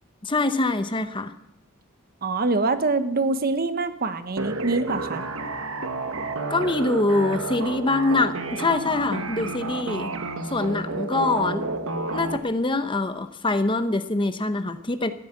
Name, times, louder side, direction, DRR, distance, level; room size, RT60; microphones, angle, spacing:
voice 1, 0.2-1.3 6.5-10.1 10.5-11.8 12.1-15.1, left 2 dB, 25° left, 10 dB, 0.8 m, -24 dB
voice 2, 2.2-5.3, right 3 dB, 45° right, 10 dB, 1.1 m, -25 dB
sound 1, 4.4-12.4, right 3 dB, 65° right, 1.4 m, -30 dB
15.0 x 9.7 x 9.0 m, 0.81 s
head